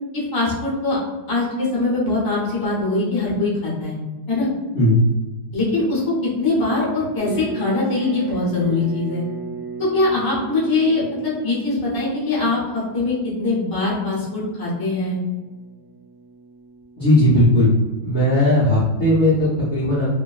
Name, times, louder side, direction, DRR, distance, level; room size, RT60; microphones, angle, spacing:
voice 1, 0.1-1.0 1.3-4.0 4.3-4.5 5.5-9.2 9.8-15.2, left 2 dB, 25° left, -8 dB, 0.5 m, -22 dB
sound 1, 7.2-18.2, right 4 dB, 65° right, 0.9 m, -38 dB
voice 2, 17.0-17.7 18.0-20.1, left 1 dB, 60° left, -10 dB, 0.7 m, -17 dB
3.0 x 2.4 x 2.3 m, 1.2 s
omnidirectional pair, 1.9 m